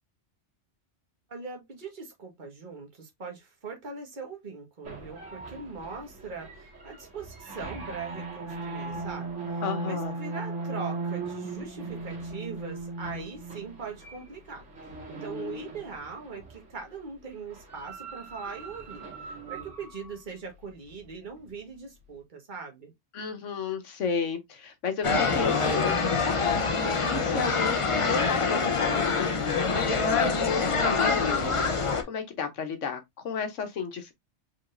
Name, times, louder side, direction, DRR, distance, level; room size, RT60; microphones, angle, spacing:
voice 1, 1.3-22.9, right 5 dB, 40° right, 1.6 m, -41 dB
sound 1, 4.8-16.7 17.5-20.1, right 3 dB, 65° right, 2.2 m, -38 dB
voice 2, 9.6-10.1 23.1-34.1, left 6 dB, 75° left, 1.3 m, -33 dB
sound 2, 25.0-32.0, left 4 dB, 30° left, 0.6 m, -25 dB
4.8 x 4.0 x 2.5 m
omnidirectional pair, 1.3 m